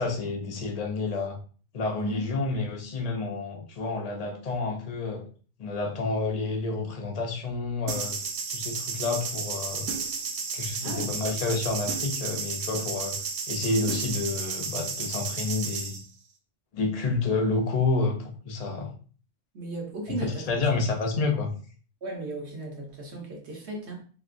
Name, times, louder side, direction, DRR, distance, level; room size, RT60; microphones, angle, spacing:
voice 1, 0.0-1.4 1.7-5.2 5.6-8.2 8.5-9.9 10.5-13.2 13.5-16.0 16.7-18.9 20.1-21.5, left 3 dB, 45° left, 2 dB, 0.5 m, -29 dB
voice 2, 2.0-2.4 10.8-11.1 19.5-20.5 22.0-24.0, right 2 dB, 60° right, 0 dB, 1.2 m, -35 dB
sound 1, 7.9-16.0, right 5 dB, 80° right, 1.0 m, -33 dB
3.0 x 3.0 x 2.4 m, 0.40 s
omnidirectional pair, 1.3 m